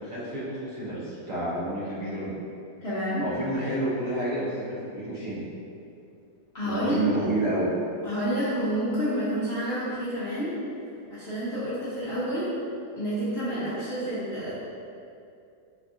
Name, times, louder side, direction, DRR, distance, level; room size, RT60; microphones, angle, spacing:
voice 1, 0.0-2.3 3.2-5.4 6.6-7.7, right 1 dB, 60° right, -9 dB, 1.1 m, -29 dB
voice 2, 2.8-3.3 6.5-7.1 8.0-10.5 11.1-12.5 13.0-14.5, equal, 55° left, -13 dB, 0.7 m, -29 dB
3.4 x 2.3 x 2.5 m, 2.5 s
omnidirectional pair, 1.7 m